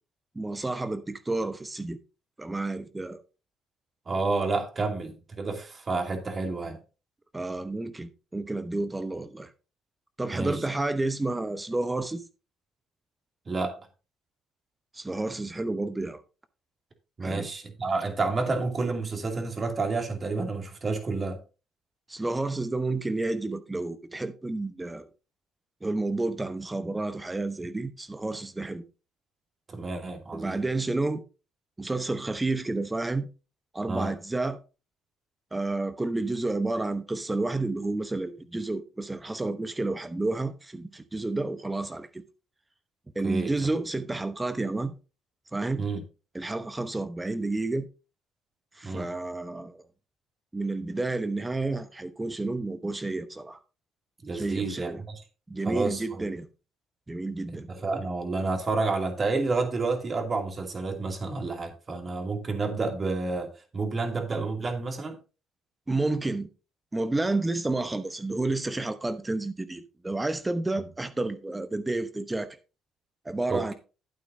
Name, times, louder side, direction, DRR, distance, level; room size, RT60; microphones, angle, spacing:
voice 1, 0.3-2.0 2.4-3.2 7.3-9.5 10.2-12.2 14.9-16.2 17.2-17.5 22.1-25.1 25.8-28.8 30.3-31.2 31.8-33.3 33.7-34.6 35.5-42.2 43.1-44.9 45.5-45.8 46.3-47.9 48.8-49.8 50.5-53.6 54.3-55.0 55.5-56.5 57.1-57.7 65.9-66.5 66.9-72.6 73.2-73.7, right 2 dB, 15° right, 1.0 m, -30 dB
voice 2, 4.1-6.8 10.3-10.7 13.5-13.8 17.2-21.4 29.7-30.6 33.9-34.1 43.2-43.7 45.8-46.0 48.8-49.1 54.2-55.2 55.6-56.2 57.5-65.2 73.5-73.7, right 3 dB, 35° right, 2.6 m, -30 dB
11.5 x 8.8 x 2.7 m
supercardioid pair, 65°, 0 cm